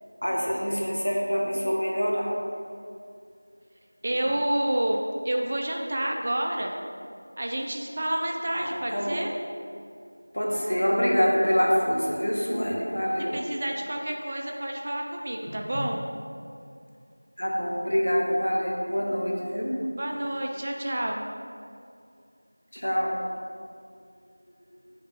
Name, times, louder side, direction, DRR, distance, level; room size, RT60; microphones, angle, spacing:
voice 1, 0.2-2.3 4.1-4.3 8.5-9.2 10.3-13.4 17.4-19.9 22.7-23.1, equal, 70° left, -2 dB, 1.6 m, -26 dB
voice 2, 4.0-6.8 7.4-9.3 13.2-16.1 20.0-21.3, right 1 dB, 20° right, 1 dB, 0.4 m, -29 dB
7.5 x 3.6 x 5.8 m, 2.4 s
figure-of-eight pair, 175°, 0 cm